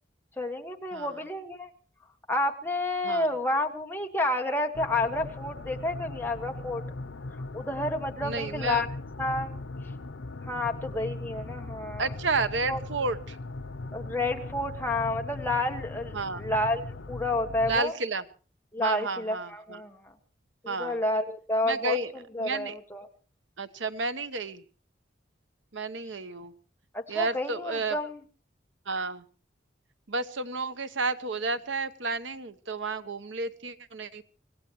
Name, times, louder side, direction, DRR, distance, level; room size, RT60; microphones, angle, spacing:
voice 1, 0.4-1.7 2.3-6.8 7.5-8.9 9.2-9.6 10.4-12.1 12.7-12.8 13.9-17.9 18.7-20.1 20.6-22.0 22.3-23.1 26.9-28.2, left 2 dB, 10° left, 3 dB, 1.6 m, -30 dB
sound 1, 4.7-17.8, left 2 dB, 90° left, 0.8 m, -39 dB
voice 2, 8.2-8.9 12.0-13.4 16.1-16.4 17.7-18.2 18.8-19.8 20.7-21.0 21.6-22.7 23.6-24.6 25.7-26.5 27.1-28.0 28.9-29.2 30.1-34.2, right 3 dB, 85° right, 12 dB, 1.0 m, -31 dB
25.5 x 17.0 x 3.1 m, 0.39 s
head